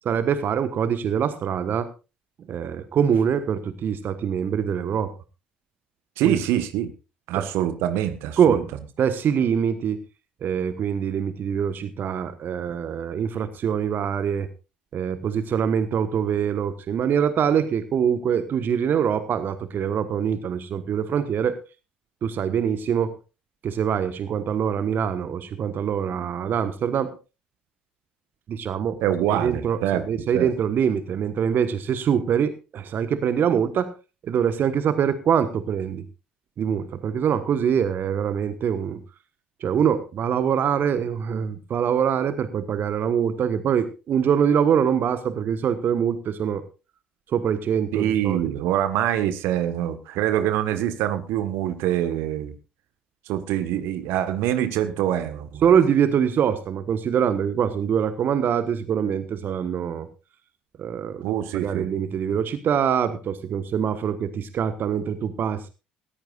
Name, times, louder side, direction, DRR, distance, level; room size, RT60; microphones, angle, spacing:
voice 1, 0.1-1.9 2.5-5.1 6.2-6.3 7.3-7.4 8.4-8.7 9.0-10.0 10.4-14.5 14.9-21.6 22.2-23.1 23.6-27.2 28.5-29.0 29.3-33.9 34.2-36.0 36.6-39.0 39.6-46.6 47.3-48.4 55.6-60.1 60.8-61.2 61.5-65.7, right 8 dB, 50° right, 12 dB, 1.3 m, -24 dB
voice 2, 6.2-6.9 7.3-8.6 29.0-30.5 47.9-52.5 53.3-55.7 61.2-61.9, right 11 dB, 65° right, 12 dB, 1.4 m, -25 dB
19.5 x 14.0 x 2.5 m, 0.30 s
figure-of-eight pair, 55°, 4 cm